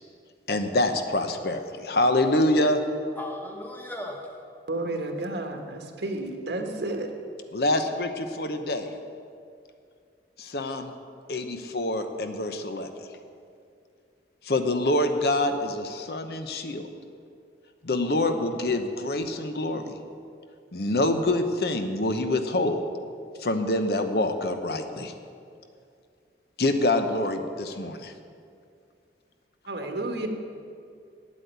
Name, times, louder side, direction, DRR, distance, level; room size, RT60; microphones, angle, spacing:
voice 1, 0.5-2.8 7.5-8.9 10.4-10.9 11.3-12.9 14.4-16.9 17.8-20.0 20.7-22.8 23.4-25.1 26.6-28.1, left 1 dB, 60° left, 7 dB, 0.8 m, -26 dB
voice 2, 3.2-4.3 29.8-30.3, left 1 dB, 10° left, 1 dB, 1.2 m, -38 dB
voice 3, 4.7-7.1 29.7-30.3, right 2 dB, 80° right, 4 dB, 1.3 m, -31 dB
8.4 x 8.4 x 9.3 m, 2.4 s
head